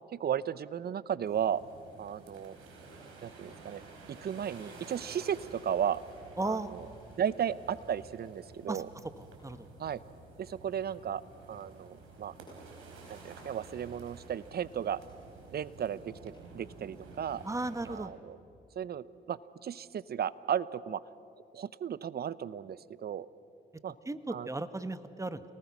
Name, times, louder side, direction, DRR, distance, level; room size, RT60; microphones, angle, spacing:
voice 1, 0.1-1.6 2.0-2.6 3.2-3.8 4.1-6.0 6.4-6.9 7.2-8.9 9.8-10.0 10.4-11.2 11.5-12.3 13.1-15.0 15.5-17.4 17.9-18.4 18.8-21.0 21.5-23.3 23.8-24.0 24.3-24.5, right 9 dB, 50° right, 18 dB, 0.8 m, -35 dB
sound 1, 1.2-18.0, right 3 dB, 80° right, 4.9 m, -52 dB
voice 2, 6.4-6.7 8.7-8.8 9.4-9.7 17.4-18.1 24.1-25.4, right 2 dB, 15° right, 12 dB, 1.3 m, -35 dB
28.5 x 19.0 x 6.1 m, 2.8 s
hypercardioid pair, 50°, 20 cm